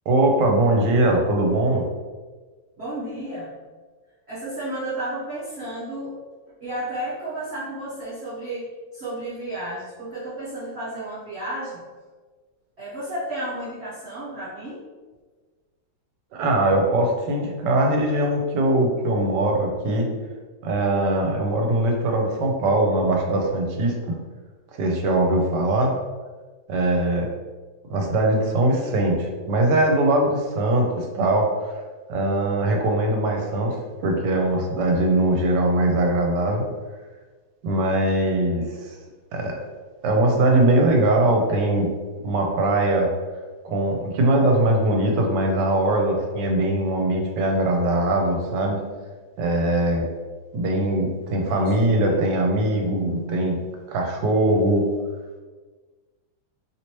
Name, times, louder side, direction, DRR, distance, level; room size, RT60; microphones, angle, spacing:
voice 1, 0.1-1.8 16.3-20.1 20.6-24.2 24.8-25.9 26.7-27.3 27.9-31.7 32.1-33.8 34.0-36.6 37.6-38.9 39.3-39.6 40.0-41.9 42.2-43.1 43.6-48.8 49.4-50.0 50.5-53.6 53.9-54.8, right 1 dB, 75° right, 1 dB, 1.2 m, -21 dB
voice 2, 2.8-3.5 4.3-6.2 6.6-11.8 12.8-14.8 28.8-29.0 51.3-52.3, right 1 dB, 50° right, -10 dB, 0.8 m, -32 dB
3.1 x 2.9 x 2.9 m, 1.4 s
omnidirectional pair, 2.0 m